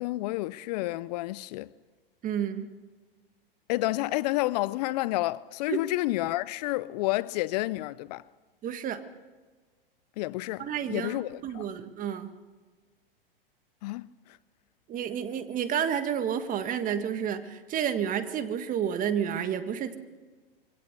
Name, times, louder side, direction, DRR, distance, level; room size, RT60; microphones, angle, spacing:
voice 1, 0.0-1.7 3.7-8.2 10.2-11.7 13.8-14.1, left 18 dB, 45° left, 0.5 m, -30 dB
voice 2, 2.2-2.7 5.7-5.8 8.6-9.0 10.6-12.3 14.9-20.0, right 8 dB, 30° right, 1.6 m, -30 dB
23.5 x 17.0 x 6.7 m
hypercardioid pair, 110°, 29 cm